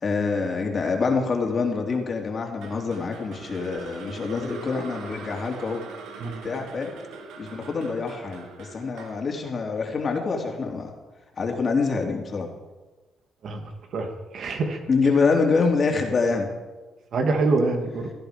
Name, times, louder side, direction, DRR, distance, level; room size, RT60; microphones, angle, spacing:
voice 1, 0.0-5.8 6.2-6.9 7.4-10.9 11.4-12.5 14.9-16.5, left 4 dB, 40° left, 2 dB, 3.2 m, -25 dB
sound 1, 2.6-10.8, right 5 dB, 90° right, 2.0 m, -43 dB
voice 2, 14.3-14.8 17.1-18.1, right 3 dB, 60° right, 5 dB, 2.4 m, -25 dB
17.0 x 14.0 x 5.2 m, 1.2 s
cardioid pair, 90°, 0 cm